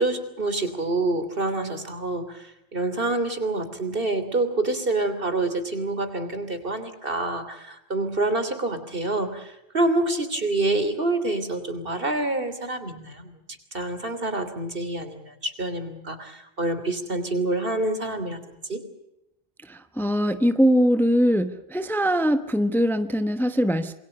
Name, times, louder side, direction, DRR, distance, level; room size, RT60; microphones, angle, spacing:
voice 1, 0.0-13.4 13.7-18.8, right 2 dB, 60° right, 10 dB, 3.4 m, -27 dB
voice 2, 19.7-23.9, equal, ahead, 10 dB, 1.1 m, -22 dB
27.5 x 22.0 x 6.7 m, 0.86 s
omnidirectional pair, 1.1 m